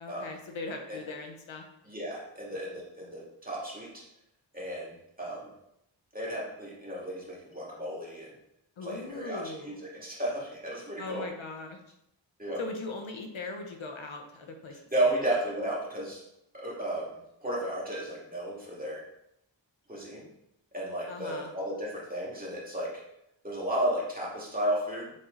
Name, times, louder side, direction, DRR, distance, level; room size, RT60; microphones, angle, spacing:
voice 1, 0.0-1.6 8.8-9.8 11.0-11.8 12.6-14.8 15.0-15.2 21.1-21.5, left 3 dB, 85° left, 4 dB, 1.0 m, -39 dB
voice 2, 1.8-4.0 4.5-5.5 6.1-8.3 8.8-11.3 12.4-12.6 14.9-16.2 16.5-19.0 19.9-20.3 20.7-23.0 23.4-25.1, right 1 dB, 20° right, -5 dB, 2.5 m, -33 dB
7.5 x 3.9 x 3.9 m, 0.81 s
wide cardioid pair, 80°, 46 cm